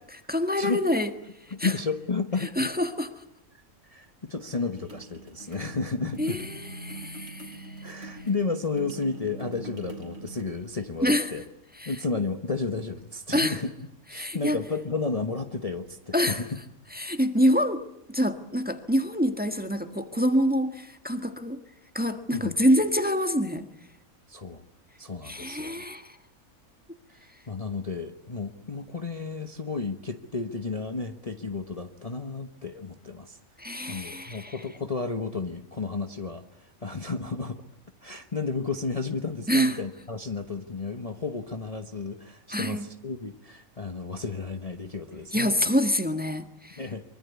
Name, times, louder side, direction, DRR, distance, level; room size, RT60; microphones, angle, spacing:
voice 1, 0.1-1.1 1.6-1.7 2.4-3.1 6.2-7.8 11.0-11.3 11.8-11.9 13.3-13.6 14.1-14.6 16.1-16.4 16.9-17.8 18.1-21.6 21.9-23.6 25.2-26.2 33.6-34.6 39.5-39.8 42.5-42.8 45.3-46.8, equal, 5° right, 8 dB, 1.4 m, -26 dB
voice 2, 1.5-2.7 3.8-6.4 7.8-11.4 11.8-13.7 14.1-16.4 22.3-22.5 24.3-24.6 25.0-25.8 27.5-33.4 33.9-37.6 38.0-45.5 46.8-47.0, left 4 dB, 25° left, 6 dB, 1.2 m, -32 dB
sound 1, 4.8-10.4, right 2 dB, 50° right, 3.7 m, -42 dB
24.0 x 24.0 x 8.3 m, 0.82 s
omnidirectional pair, 1.5 m